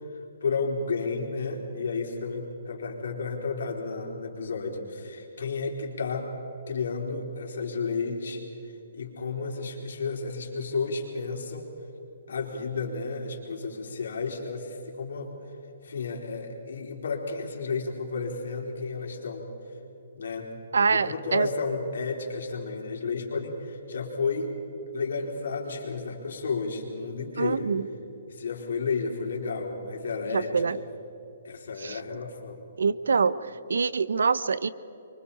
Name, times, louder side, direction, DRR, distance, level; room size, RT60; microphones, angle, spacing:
voice 1, 0.1-6.3 6.7-11.7 12.3-15.3 15.8-19.5 20.1-24.6 24.9-27.7 28.3-30.8 31.4-32.6, left 4 dB, 75° left, 1 dB, 4.1 m, -32 dB
voice 2, 20.7-21.5 27.4-27.8 30.3-30.8 31.8-31.9 32.8-33.3 33.7-34.7, right 5 dB, 85° right, 16 dB, 0.8 m, -24 dB
28.0 x 24.0 x 4.3 m, 2.9 s
hypercardioid pair, 160°, 0 cm